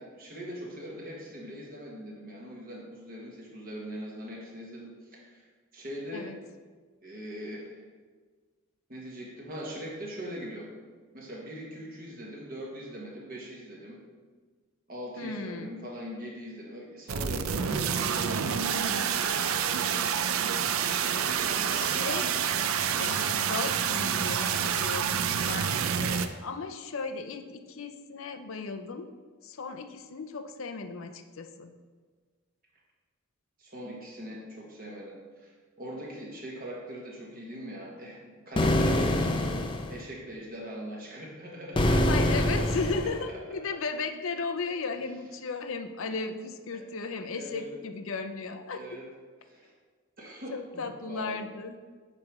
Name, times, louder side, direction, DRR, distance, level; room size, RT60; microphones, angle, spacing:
voice 1, 0.0-5.4 5.7-6.3 7.0-7.8 8.9-10.7 11.1-14.0 14.9-18.7 21.2-21.9 33.6-35.5 35.8-42.9 43.6-43.7 46.7-46.8 47.2-47.7 48.7-49.1 49.4-49.7 50.2-51.4, equal, 40° right, -3 dB, 1.2 m, -41 dB
voice 2, 15.2-15.7 18.6-19.1 21.7-29.1 29.4-31.7 42.1-49.0 50.5-51.8, left 4 dB, 65° left, 8 dB, 0.6 m, -36 dB
sound 1, 17.1-26.3, right 7 dB, 70° right, 0.4 m, -28 dB
sound 2, 38.6-40.0 41.7-43.2, left 1 dB, 20° left, 0.5 m, -25 dB
8.3 x 3.3 x 5.9 m, 1.5 s
head